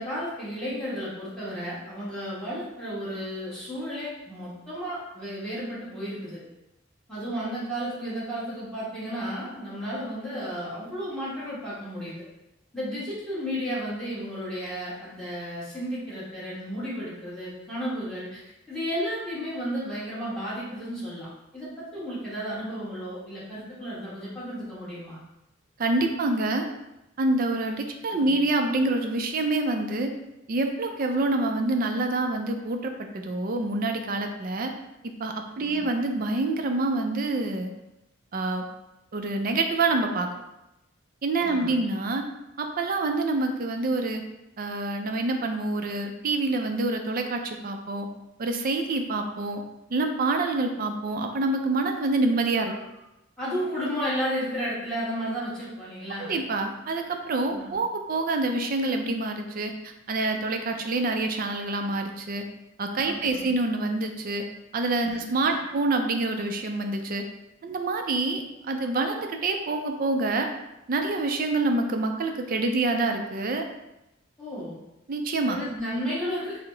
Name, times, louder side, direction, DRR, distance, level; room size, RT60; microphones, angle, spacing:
voice 1, 0.0-6.4 7.1-12.2 12.7-18.4 18.7-25.2 28.1-28.3 35.6-35.9 41.4-41.7 52.6-52.9 53.4-56.4 57.5-57.8 63.0-63.5 65.1-65.2 65.5-65.7 74.4-74.8 75.5-76.6, equal, 5° left, -10 dB, 1.2 m, -33 dB
voice 2, 25.8-26.7 27.2-30.1 30.5-34.7 35.2-37.7 38.3-38.6 39.1-40.3 41.2-42.2 42.6-44.2 44.6-48.1 48.4-49.6 49.9-52.7 56.2-59.7 60.1-62.4 62.8-64.4 64.7-67.2 67.6-70.5 70.9-73.6 75.1-75.6, right 2 dB, 45° right, 5 dB, 0.4 m, -26 dB
4.6 x 2.0 x 3.8 m, 0.92 s
head